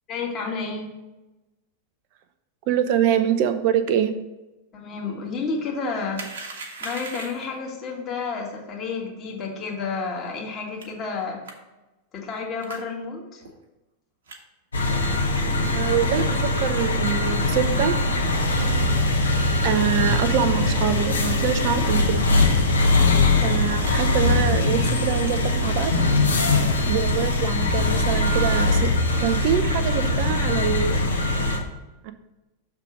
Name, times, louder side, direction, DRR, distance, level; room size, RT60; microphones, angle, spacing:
voice 1, 0.1-0.9 4.7-11.4 12.1-13.4, left 4 dB, 30° left, -1 dB, 1.6 m, -31 dB
voice 2, 2.7-4.1 15.7-18.0 19.6-22.2 23.4-25.9 26.9-28.9 29.2-31.0 32.0-32.1, right 9 dB, 45° right, 10 dB, 0.4 m, -25 dB
sound 1, 6.1-7.6 10.8-10.9 11.5-11.6 12.6-12.8 13.4-13.5 14.3-14.4 14.8-15.1 15.6-15.7 16.3-16.4 16.6-16.7 17.0-17.2 17.7-17.8 18.4-18.7 19.2-19.3 19.8-20.3 20.9-21.1 21.4-21.5 21.8-21.9 22.5-22.6 22.8-23.2 23.6-24.0 24.5-24.8, right 3 dB, 65° right, 1.0 m, -40 dB
sound 2, 14.7-31.6, left 2 dB, 70° left, 0.9 m, -21 dB
6.6 x 3.5 x 6.1 m, 1.1 s
figure-of-eight pair, 90°, 0 cm